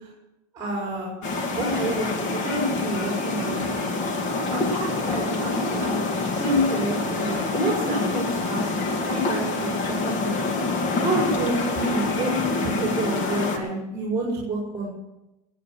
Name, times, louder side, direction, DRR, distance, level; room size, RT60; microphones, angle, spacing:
voice 1, 0.5-4.0 4.5-10.5 11.0-14.9, right 1 dB, 15° right, -4 dB, 5.0 m, -28 dB
sound 1, 1.2-13.6, left 3 dB, 40° left, 2.2 m, -26 dB
18.5 x 8.5 x 6.5 m, 0.94 s
supercardioid pair, 145°, 19 cm